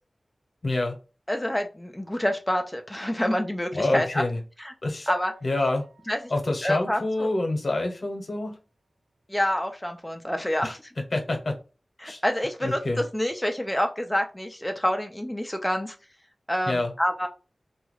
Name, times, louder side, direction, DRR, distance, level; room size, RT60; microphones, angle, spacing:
voice 1, 0.6-1.0 3.7-4.4 4.8-5.1 5.4-5.9 6.3-8.5 10.6-10.7 11.1-11.5 12.0-12.2 12.6-13.0 16.7-16.9, left 2 dB, 60° left, 3 dB, 0.9 m, -27 dB
voice 2, 1.3-4.2 4.6-4.7 5.1-5.3 6.1-6.2 6.6-7.3 9.3-10.8 12.0-16.0 16.5-17.3, equal, 10° left, 4 dB, 0.4 m, -27 dB
sound 1, 5.1-8.7 9.3-9.4 9.6-9.7, right 1 dB, 45° right, 0.6 m, -44 dB
2.8 x 2.3 x 3.0 m, 0.32 s
wide cardioid pair, 60°, 0 cm